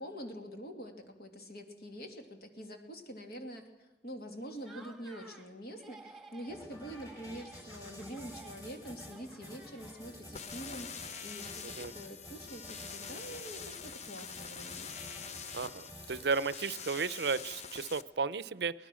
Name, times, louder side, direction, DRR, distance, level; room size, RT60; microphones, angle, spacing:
voice 1, 0.0-14.9, equal, 60° left, 5 dB, 2.8 m, -46 dB
Laughter, 4.5-5.5 5.8-6.6 6.9-10.3, right 3 dB, ahead, 1.7 m, -54 dB
sound 1, 6.5-16.5, equal, 20° left, 6.2 m, -51 dB
sound 2, 10.4-18.0, left 6 dB, 40° left, 0.8 m, -45 dB
voice 2, 15.5-18.7, right 4 dB, 65° right, 18 dB, 0.6 m, -34 dB
23.5 x 19.5 x 6.2 m, 1.1 s
head